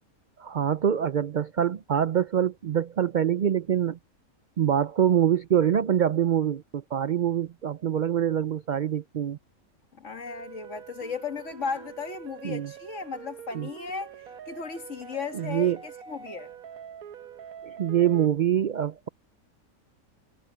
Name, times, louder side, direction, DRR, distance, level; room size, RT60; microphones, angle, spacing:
voice 1, 0.4-4.0 4.6-9.4 12.4-12.7 13.5-13.7 15.3-15.8 17.6-19.1, right 9 dB, 65° right, 0.4 m, -25 dB
voice 2, 10.0-16.5, left 5 dB, 60° left, 2.1 m, -36 dB
sound 1, 10.3-18.3, right 8 dB, 85° right, 1.5 m, -44 dB
omnidirectional pair, 1.5 m